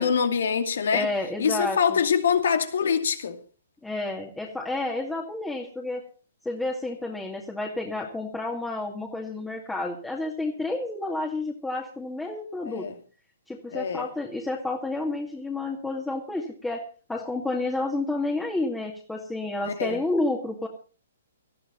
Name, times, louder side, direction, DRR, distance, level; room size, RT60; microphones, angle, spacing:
voice 1, 0.0-1.1 1.4-3.4 12.6-12.9 13.7-14.0 19.8-20.0, left 7 dB, 65° left, 2.5 m, -24 dB
voice 2, 0.9-2.0 3.8-6.0 6.4-12.9 13.5-16.8 17.1-20.7, left 2 dB, 5° left, 2.3 m, -30 dB
19.0 x 13.5 x 4.0 m
hypercardioid pair, 130°, 0 cm